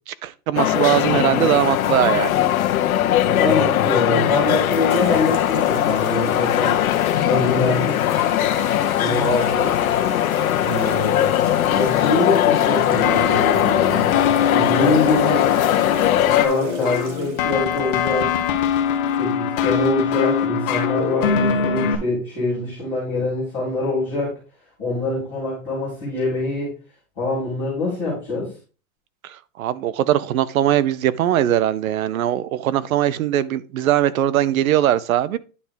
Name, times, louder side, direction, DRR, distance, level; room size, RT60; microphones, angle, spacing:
voice 1, 0.1-2.4 29.2-35.4, right 12 dB, 80° right, 0.7 m, -20 dB
sound 1, 0.6-16.5, left 12 dB, 85° left, 1.0 m, -20 dB
voice 2, 3.2-6.7 7.2-8.1 9.0-9.7 10.6-11.4 11.7-14.1 14.5-15.4 16.3-18.3 19.2-24.3 24.8-26.7 27.2-28.5, left 2 dB, ahead, 0.3 m, -24 dB
sound 2, 4.9-19.2, right 3 dB, 25° right, 0.8 m, -38 dB
sound 3, 13.0-21.9, left 7 dB, 40° left, 1.3 m, -23 dB
9.7 x 3.4 x 4.6 m
supercardioid pair, 175°, 41 cm